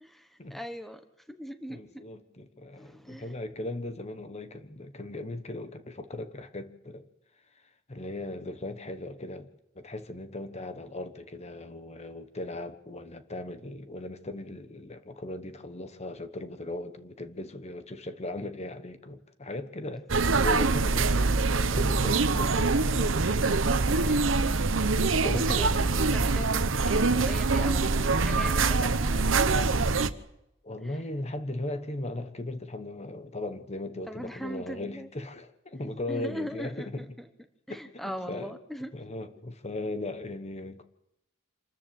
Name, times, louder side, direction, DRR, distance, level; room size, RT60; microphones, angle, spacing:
voice 1, 0.0-1.0 1.3-2.0 2.8-3.3 23.9-24.6 24.9-30.0 30.8-31.0 34.1-35.1 36.1-37.3 37.7-38.9, equal, ahead, 1.2 m, -40 dB
voice 2, 1.7-7.1 7.9-9.5 9.7-23.1 25.1-25.4 30.6-37.0 37.7-38.5 38.9-40.8, left 2 dB, 35° left, 1.2 m, -38 dB
sound 1, 20.1-30.1, right 3 dB, 80° right, 1.0 m, -24 dB
26.0 x 14.0 x 7.7 m
head